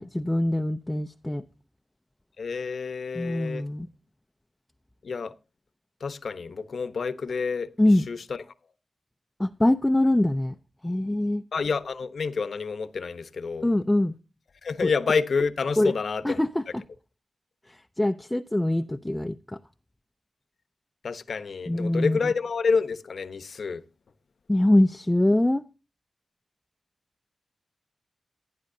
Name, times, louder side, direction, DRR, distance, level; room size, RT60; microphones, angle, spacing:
voice 1, 0.0-1.4 3.1-3.9 7.8-8.1 9.4-10.5 10.8-11.4 13.6-14.1 14.8-14.9 15.8-15.9 16.2-16.8 17.7-19.6 21.7-22.3 24.5-25.6, left 1 dB, 10° left, 0.6 m, -23 dB
voice 2, 2.4-3.6 5.0-5.3 6.0-7.7 8.1-8.2 11.5-13.7 14.6-16.4 21.0-23.8, left 5 dB, 70° left, 1.0 m, -28 dB
16.5 x 9.6 x 2.7 m
wide cardioid pair, 85°, 0 cm